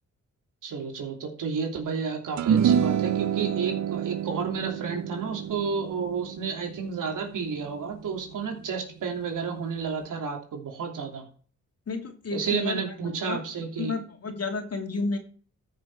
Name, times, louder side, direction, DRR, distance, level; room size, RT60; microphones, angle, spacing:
voice 1, 0.6-11.2 12.3-13.9, right 5 dB, 85° right, 3 dB, 3.0 m, -31 dB
sound 1, 2.4-8.9, right 8 dB, 65° right, 0.6 m, -28 dB
voice 2, 11.9-12.8 13.2-13.4 13.8-15.2, left 3 dB, 50° left, 4 dB, 2.6 m, -31 dB
13.5 x 6.7 x 4.7 m, 0.43 s
cardioid pair, 80°, 31 cm